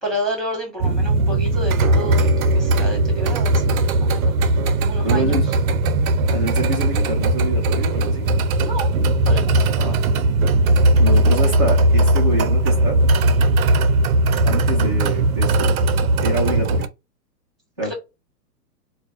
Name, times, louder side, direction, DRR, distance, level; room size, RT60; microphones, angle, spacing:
voice 1, 0.0-4.4 4.9-5.4 8.6-8.9 9.2-9.7 17.8-17.9, equal, ahead, 1.2 m, -30 dB
sound 1, 0.8-16.9, right 2 dB, 60° right, 0.6 m, -18 dB
voice 2, 5.0-5.4 6.3-8.3 9.8-10.0 11.0-13.0 14.4-15.8 16.2-16.9 17.8-17.9, right 1 dB, 15° right, 0.3 m, -26 dB
4.3 x 2.2 x 2.5 m
hypercardioid pair, 135°, 50 cm